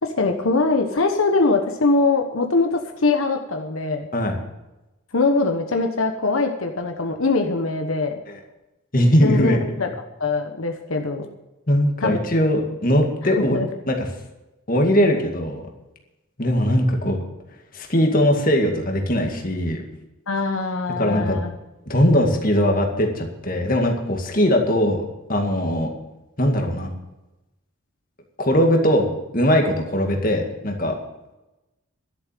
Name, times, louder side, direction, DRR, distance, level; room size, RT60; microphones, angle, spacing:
voice 1, 0.0-4.1 5.1-8.2 9.2-9.9 10.2-11.2 12.0-12.2 13.4-13.7 20.3-21.5, left 3 dB, 85° left, 5 dB, 1.1 m, -22 dB
voice 2, 8.9-9.6 11.7-13.6 13.9-14.1 14.7-15.6 16.4-17.2 17.7-19.8 21.0-21.4 21.9-25.9 26.4-26.9 28.4-29.1 29.3-31.0, equal, 40° left, 2 dB, 2.1 m, -20 dB
12.0 x 7.3 x 9.0 m, 0.99 s
head